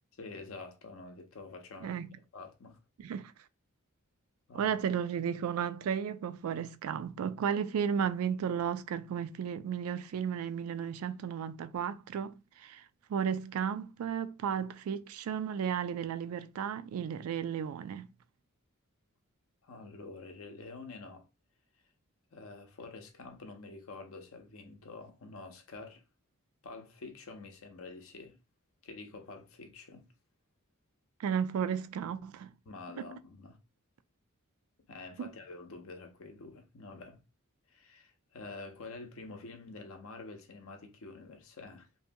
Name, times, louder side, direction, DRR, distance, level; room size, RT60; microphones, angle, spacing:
voice 1, 0.2-2.8 4.5-4.7 19.6-21.3 22.3-26.0 26.6-28.4 28.8-30.1 32.7-33.6 34.9-37.2 37.7-42.0, left 3 dB, 70° left, 0.6 m, -47 dB
voice 2, 4.5-12.8 13.1-18.1 31.2-32.5 33.0-33.1 35.2-35.3, right 7 dB, 75° right, 0.3 m, -34 dB
2.7 x 2.1 x 2.6 m
head